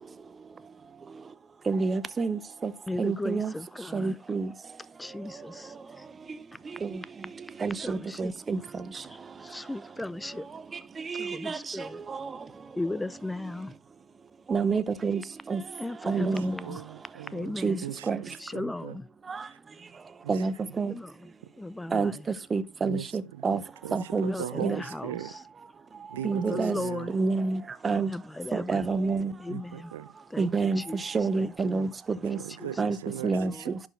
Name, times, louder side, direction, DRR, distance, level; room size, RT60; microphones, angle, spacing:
voice 1, 1.7-2.7 3.0-3.5 3.9-4.5 7.6-8.6 11.2-11.6 14.5-15.2 15.5-15.6 16.1-16.5 17.6-17.8 18.1-18.2 20.3-20.9 21.9-22.1 22.5-23.0 23.4-23.6 23.9-24.3 24.6-24.8 26.2-26.8 27.1-28.1 28.7-29.3 30.4-30.8 31.1-31.9 32.2-32.4 32.8-33.0 33.2-33.5, right 4 dB, 25° right, 0.7 m, -27 dB
voice 2, 2.9-4.2 5.0-5.8 7.8-8.3 9.1-10.5 11.2-12.0 12.8-13.7 15.8-16.8 17.3-17.8 18.4-19.0 20.9-21.1 21.6-22.1 24.3-25.1 26.3-27.2 28.1-28.9 29.4-29.9 30.3-31.1 31.3-31.9 33.3-33.6, left 2 dB, 10° left, 0.3 m, -36 dB
voice 3, 16.1-17.5 17.8-19.0 19.5-19.6 20.2-20.4 21.9-22.0 22.8-25.3 26.1-27.1 29.2-30.1 32.3-33.9, right 12 dB, 80° right, 0.6 m, -40 dB
11.0 x 4.9 x 3.8 m
hypercardioid pair, 80°, 0 cm